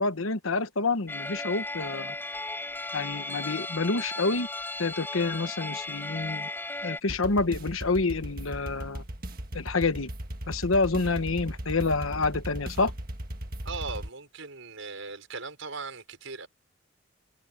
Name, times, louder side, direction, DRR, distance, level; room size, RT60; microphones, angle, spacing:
voice 1, 0.0-2.1 2.9-4.5 4.8-6.5 6.8-9.0 9.5-10.1 10.5-12.9, left 3 dB, 85° left, 1.2 m, -28 dB
sound 1, 1.1-7.0, left 2 dB, 10° left, 5.1 m, -35 dB
sound 2, 7.1-14.1, right 1 dB, 45° right, 1.7 m, -37 dB
voice 2, 13.6-16.5, right 4 dB, 75° right, 5.5 m, -38 dB
head